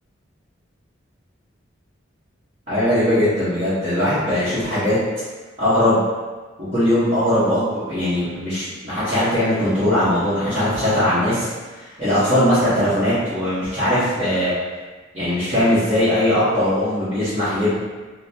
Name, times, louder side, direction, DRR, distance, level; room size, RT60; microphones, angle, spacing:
voice 1, 2.7-4.9 5.6-6.0 6.7-11.5 12.0-14.5 15.1-17.8, left 1 dB, 30° right, -17 dB, 1.1 m, -20 dB
4.0 x 2.1 x 2.8 m, 1.3 s
head